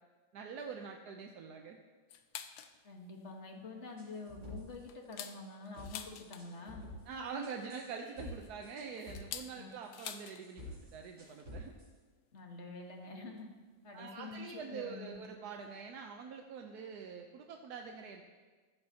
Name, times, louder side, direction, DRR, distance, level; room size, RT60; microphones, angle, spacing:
voice 1, 0.3-1.8 7.1-11.7 13.2-13.4 13.9-18.2, right 5 dB, 65° right, 3 dB, 1.2 m, -45 dB
sound 1, 2.1-2.8 3.2-3.3 3.7-3.9 4.4-6.7 7.9-10.5 10.7-10.8 11.1-11.4 12.4-12.5 13.4-13.5 14.3-14.5 14.8-14.9 15.1-15.3, left 9 dB, 85° left, 1.4 m, -48 dB
voice 2, 2.8-6.9 9.6-9.7 12.3-13.5 13.8-15.2, left 3 dB, 40° left, 2 dB, 1.6 m, -47 dB
sound 2, 4.0-4.8 5.2-5.5 5.8-7.0 7.4-8.4 8.6-9.4 9.8-11.9, left 1 dB, 40° right, 4.4 m, -49 dB
15.0 x 13.5 x 2.8 m, 1.4 s
omnidirectional pair, 2.0 m